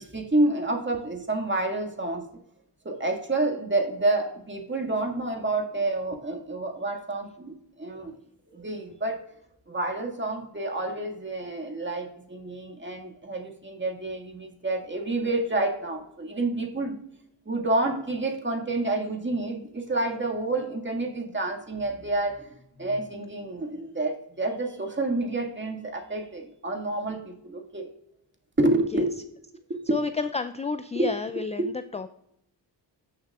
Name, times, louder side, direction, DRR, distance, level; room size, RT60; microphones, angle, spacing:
voice 1, 0.0-2.3 2.8-8.2 8.5-9.2 9.7-17.0 17.5-27.9 28.6-29.1 29.7-30.0 31.0-31.1 31.6-31.7, right 2 dB, 25° right, 2 dB, 1.9 m, -29 dB
voice 2, 29.9-32.1, left 4 dB, 15° left, 11 dB, 0.4 m, -30 dB
15.0 x 6.6 x 2.4 m, 0.77 s
cardioid pair, 60°, 43 cm